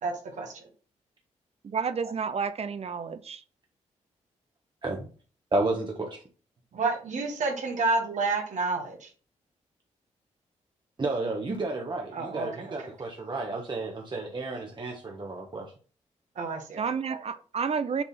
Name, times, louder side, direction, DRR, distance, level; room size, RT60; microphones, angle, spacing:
voice 1, 0.0-0.7 6.7-9.1 12.1-12.7 16.3-16.8, right 3 dB, 70° right, 1.6 m, -30 dB
voice 2, 1.6-3.4 16.8-18.0, right 6 dB, 55° right, 0.7 m, -30 dB
voice 3, 5.5-6.2 11.0-15.7, right 2 dB, 35° right, 1.3 m, -31 dB
7.1 x 3.6 x 4.3 m
cardioid pair, 60°, 13 cm